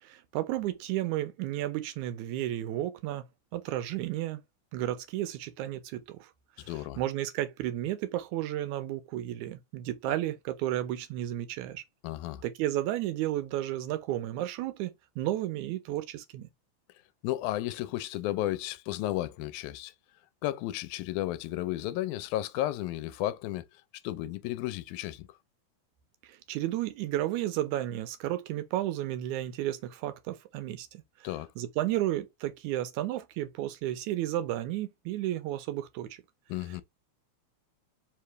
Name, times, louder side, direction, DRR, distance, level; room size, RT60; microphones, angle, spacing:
voice 1, 0.0-3.3 3.5-4.4 4.7-6.3 6.6-11.8 12.4-16.5 26.2-31.3 31.6-36.2, right 14 dB, 85° right, 2.1 m, -33 dB
voice 2, 6.7-7.0 12.0-12.4 17.2-19.9 20.4-23.6 24.0-25.3 31.2-31.5 36.5-36.8, left 15 dB, 85° left, 2.0 m, -33 dB
4.9 x 2.9 x 3.2 m
omnidirectional pair, 3.4 m